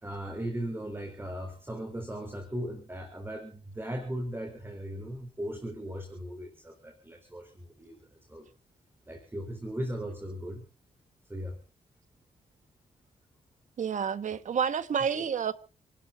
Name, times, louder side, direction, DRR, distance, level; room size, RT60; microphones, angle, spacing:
voice 1, 0.0-8.0 8.3-8.5 9.1-10.6 11.3-11.6 14.3-14.4 15.1-15.3, right 1 dB, 15° right, 3.7 m, -37 dB
voice 2, 13.8-15.5, right 7 dB, 60° right, 1.5 m, -29 dB
28.5 x 12.5 x 2.6 m
cardioid pair, 80°, 14 cm